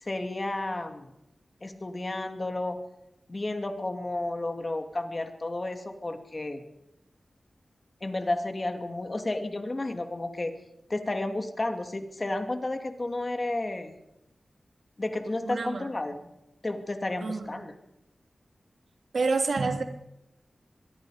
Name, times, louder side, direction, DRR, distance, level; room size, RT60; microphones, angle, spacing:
voice 1, 0.0-1.1 1.6-2.8 3.3-6.6 8.0-10.5 10.9-14.0 15.0-16.2 16.6-17.7, left 2 dB, 35° left, 6 dB, 2.5 m, -32 dB
voice 2, 15.4-16.1 17.2-17.6 19.1-19.8, right 4 dB, 80° right, 4 dB, 3.0 m, -29 dB
24.5 x 22.0 x 5.0 m, 0.88 s
wide cardioid pair, 90°, 0 cm